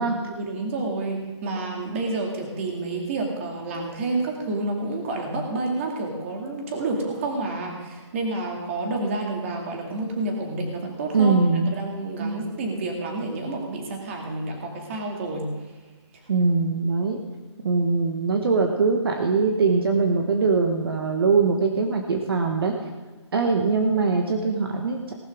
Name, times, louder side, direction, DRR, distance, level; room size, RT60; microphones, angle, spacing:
voice 1, 0.2-11.4 11.7-15.5, right 2 dB, 25° right, 1 dB, 2.4 m, -29 dB
voice 2, 11.1-11.7 12.2-12.4 16.3-17.2 17.6-22.7 23.3-25.1, right 4 dB, 50° right, 3 dB, 1.4 m, -22 dB
18.5 x 12.0 x 3.6 m, 1.3 s
hypercardioid pair, 170°, 15 cm